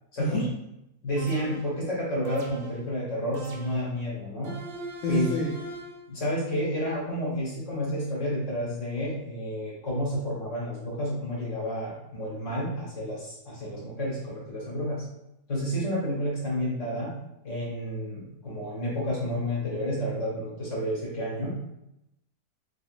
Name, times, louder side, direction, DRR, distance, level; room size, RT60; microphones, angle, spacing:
voice 1, 1.0-4.5 5.1-5.3 6.1-15.0 15.5-17.1 17.4-21.6, equal, 50° left, -5 dB, 1.5 m, -30 dB
sound 1, 1.2-1.8 2.2-2.9 3.3-4.0 4.4-6.0, right 2 dB, 60° right, 0.6 m, -40 dB
voice 2, 5.0-5.5, left 1 dB, 70° left, -3 dB, 0.7 m, -28 dB
3.5 x 3.5 x 2.4 m, 0.85 s
omnidirectional pair, 1.8 m